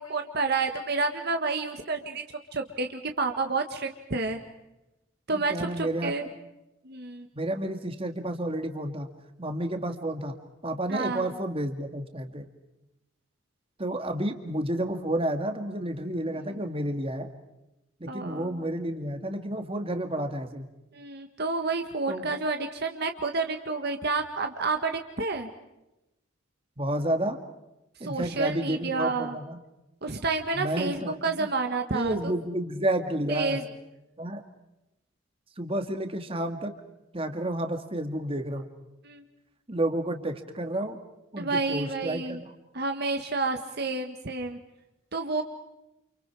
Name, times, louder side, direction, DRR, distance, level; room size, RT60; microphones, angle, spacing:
voice 1, 0.0-2.2 2.5-4.4 5.3-6.3 6.8-7.3 10.9-11.3 16.3-16.5 18.1-18.7 20.9-25.5 28.0-29.4 30.0-32.1 33.3-33.6 39.0-39.2 41.4-42.4 42.7-44.6 45.1-45.4, right 3 dB, 55° right, 5 dB, 1.7 m, -30 dB
voice 2, 5.3-6.1 7.3-9.1 9.4-10.3 10.6-12.5 13.8-17.3 18.0-20.7 22.1-22.3 26.8-27.4 28.0-29.6 30.5-31.5 31.9-33.6 34.2-34.4 35.6-36.8 37.1-38.7 39.7-41.0 41.3-42.5, right 1 dB, 30° right, 6 dB, 2.2 m, -30 dB
29.5 x 28.5 x 4.9 m, 0.92 s
head